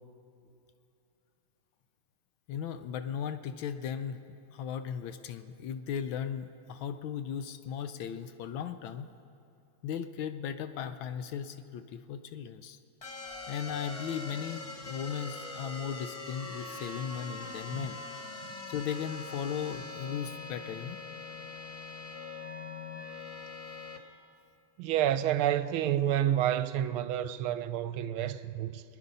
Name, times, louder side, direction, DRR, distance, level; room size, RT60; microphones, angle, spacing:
voice 1, 2.5-4.2 4.5-9.1 9.8-12.8 13.5-18.0 18.7-21.0 21.4-21.5, left 8 dB, 75° left, 1.3 m, -37 dB
sound 1, 13.0-24.0, left 3 dB, 35° left, 0.5 m, -42 dB
voice 2, 24.8-28.8, right 11 dB, 80° right, 1.4 m, -29 dB
24.5 x 10.0 x 5.4 m
omnidirectional pair, 2.4 m